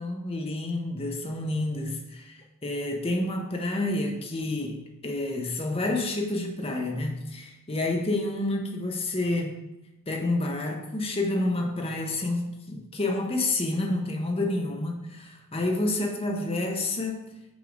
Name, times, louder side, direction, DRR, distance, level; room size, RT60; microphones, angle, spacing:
voice 1, 0.0-4.8 5.0-9.6 10.1-17.2, left 2 dB, 25° left, 2 dB, 0.8 m, -29 dB
6.2 x 3.7 x 5.1 m, 0.96 s
head